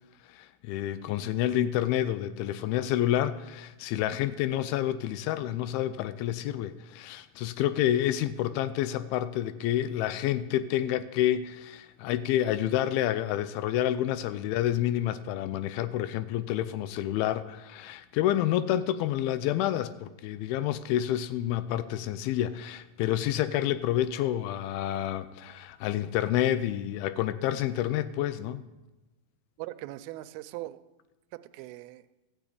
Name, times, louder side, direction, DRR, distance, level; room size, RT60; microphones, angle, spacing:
voice 1, 0.3-28.6, left 12 dB, 85° left, 13 dB, 2.4 m, -29 dB
voice 2, 29.6-30.8 31.3-32.1, right 17 dB, 85° right, 11 dB, 2.4 m, -40 dB
14.0 x 6.1 x 8.3 m, 1.1 s
omnidirectional pair, 4.3 m